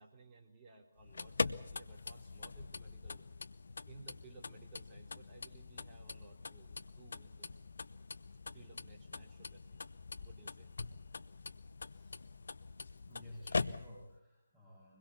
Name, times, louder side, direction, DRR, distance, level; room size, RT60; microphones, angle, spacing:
voice 1, 0.0-3.2 3.9-7.5 8.5-9.8 10.2-10.7, right 3 dB, 20° right, -1 dB, 3.9 m, -58 dB
sound 1, 1.0-14.2, left 4 dB, 55° left, 0.8 m, -43 dB
voice 2, 11.8-12.2 13.1-15.0, left 1 dB, ahead, -10 dB, 7.5 m, -55 dB
24.0 x 21.5 x 7.1 m, 0.85 s
figure-of-eight pair, 145°, 0 cm